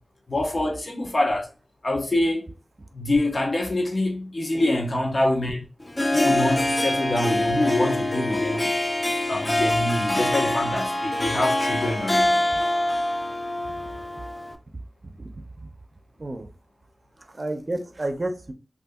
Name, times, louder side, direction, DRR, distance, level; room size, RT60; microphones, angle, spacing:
voice 1, 0.3-1.5 1.8-2.4 2.9-5.6 6.1-8.7 9.3-12.4, left 1 dB, 60° left, 0.8 m, -25 dB
Harp, 5.8-14.5, left 1 dB, 30° left, 0.4 m, -25 dB
voice 2, 15.0-15.7 16.2-16.5 17.3-18.5, right 1 dB, 50° right, 0.5 m, -31 dB
2.6 x 2.5 x 3.5 m
wide cardioid pair, 50°, 0 cm